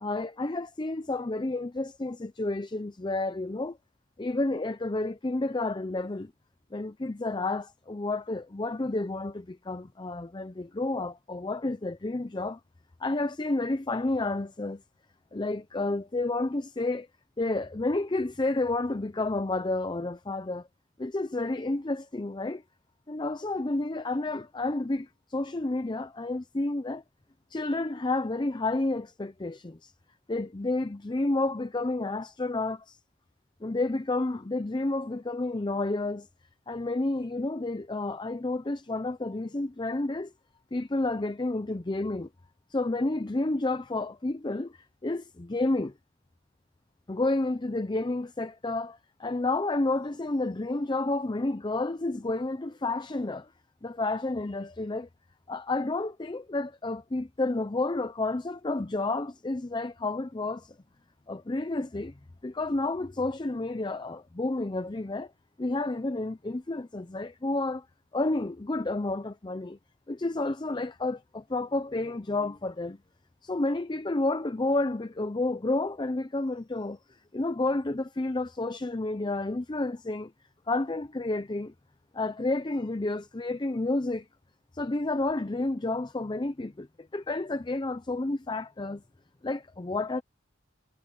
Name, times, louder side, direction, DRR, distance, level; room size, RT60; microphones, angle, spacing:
voice 1, 0.0-3.8 4.2-6.3 6.7-12.6 13.0-14.8 15.3-17.1 17.4-20.7 21.0-22.6 23.1-27.0 27.5-29.9 30.3-33.0 33.6-36.3 36.7-40.3 40.7-42.3 42.7-45.9 47.1-53.5 53.8-55.1 55.5-60.7 61.3-62.1 62.4-65.3 65.6-67.8 68.1-69.8 70.1-73.0 73.4-77.0 77.3-80.3 80.7-81.7 82.1-84.3 84.7-89.0 89.4-90.2, left 2 dB, 25° left, 0.6 m, -30 dB
head